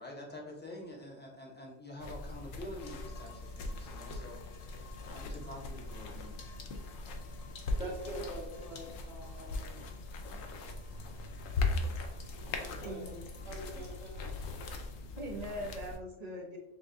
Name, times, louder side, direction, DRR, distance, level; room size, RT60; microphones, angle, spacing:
voice 1, 0.0-6.3, left 1 dB, 10° left, -2 dB, 0.7 m, -47 dB
sound 1, 2.0-16.0, left 3 dB, 80° left, 1.0 m, -39 dB
sound 2, 2.8-15.0, left 4 dB, 50° left, 0.8 m, -57 dB
voice 2, 7.8-9.9 11.0-11.1 11.8-13.1 13.4-14.3, right 1 dB, 65° right, -9 dB, 1.8 m, -45 dB
voice 3, 12.8-13.2 15.2-16.6, equal, 40° right, 0 dB, 0.7 m, -41 dB
6.9 x 2.4 x 2.6 m, 0.91 s
omnidirectional pair, 1.3 m